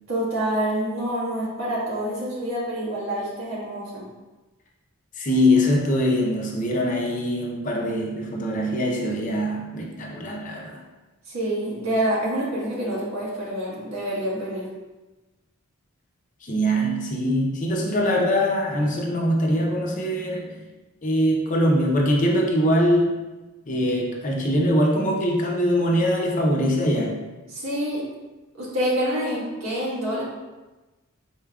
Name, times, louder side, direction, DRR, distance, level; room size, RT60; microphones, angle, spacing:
voice 1, 0.1-4.1 11.2-14.7 27.5-28.0 28.5-30.2, right 1 dB, 85° right, -7 dB, 1.4 m, -27 dB
voice 2, 5.2-10.8 16.4-20.6 21.0-23.1 23.7-27.2, equal, 40° left, -1 dB, 0.6 m, -22 dB
4.3 x 3.5 x 2.3 m, 1.1 s
head